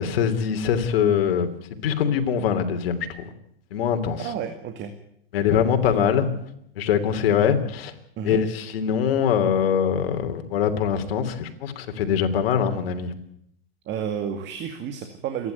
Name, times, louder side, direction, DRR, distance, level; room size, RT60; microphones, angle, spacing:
voice 1, 0.0-1.5 1.8-3.3 3.7-4.2 5.3-6.3 6.8-7.9 8.2-13.1, left 8 dB, 70° left, 7 dB, 3.1 m, -23 dB
voice 2, 4.2-4.9 6.0-6.1 8.2-8.4 13.9-15.5, right 8 dB, 35° right, 7 dB, 2.2 m, -31 dB
27.0 x 11.0 x 9.3 m, 0.73 s
hypercardioid pair, 125°, 30 cm